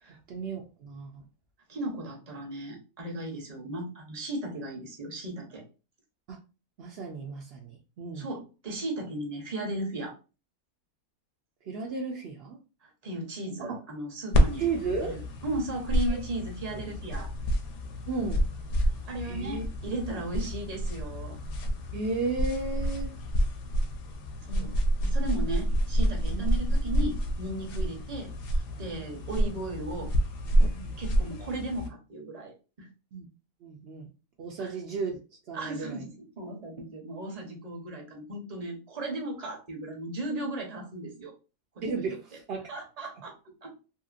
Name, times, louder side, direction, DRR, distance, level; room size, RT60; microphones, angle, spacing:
voice 1, 0.1-1.2 6.3-6.4 6.8-8.3 11.6-12.6 13.6-13.8 14.6-15.2 16.1-16.2 16.7-16.8 18.1-18.4 19.2-19.7 21.9-23.1 26.3-26.5 27.7-27.9 29.0-29.2 30.7-31.0 33.1-33.3 33.6-34.1 34.4-35.2 35.5-36.0 41.8-42.7, right 4 dB, 80° right, 0 dB, 0.5 m, -34 dB
voice 2, 1.7-5.6 8.2-10.1 12.8-14.6 15.1-17.3 19.0-21.4 24.4-24.8 25.0-30.1 31.0-32.9 34.6-34.7 35.5-36.1 36.4-41.3 41.7-42.0 42.7-43.7, right 1 dB, 35° right, 1 dB, 0.7 m, -36 dB
sound 1, 14.3-31.9, equal, 65° left, 0.7 m, -29 dB
2.8 x 2.8 x 2.4 m, 0.32 s
omnidirectional pair, 1.6 m